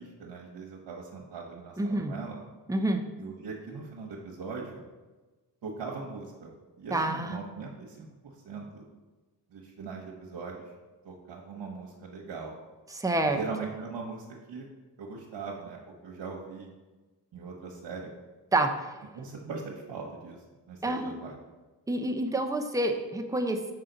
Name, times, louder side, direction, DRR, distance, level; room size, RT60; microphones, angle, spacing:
voice 1, 0.0-2.4 3.2-4.8 5.6-8.9 9.5-10.7 11.0-12.5 13.2-14.7 15.0-16.7 17.3-18.1 19.1-21.4, right 4 dB, 70° right, -2 dB, 1.0 m, -40 dB
voice 2, 1.8-2.1 2.7-3.0 6.9-7.4 12.9-13.4 18.5-18.7 20.8-21.1 21.9-23.7, right 2 dB, 10° right, 4 dB, 0.7 m, -28 dB
5.7 x 4.8 x 3.9 m, 1.2 s
cardioid pair, 55°, 44 cm